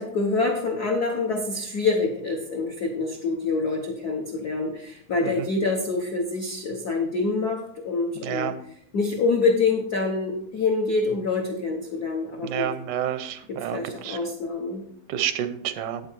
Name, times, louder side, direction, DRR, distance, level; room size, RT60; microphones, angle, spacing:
voice 1, 0.0-8.5 8.9-12.7 13.5-14.8, left 3 dB, 85° left, 1 dB, 0.8 m, -26 dB
voice 2, 8.2-8.6 12.4-14.2 15.1-16.0, right 10 dB, 90° right, 11 dB, 2.3 m, -29 dB
8.6 x 7.9 x 4.5 m, 0.68 s
omnidirectional pair, 3.4 m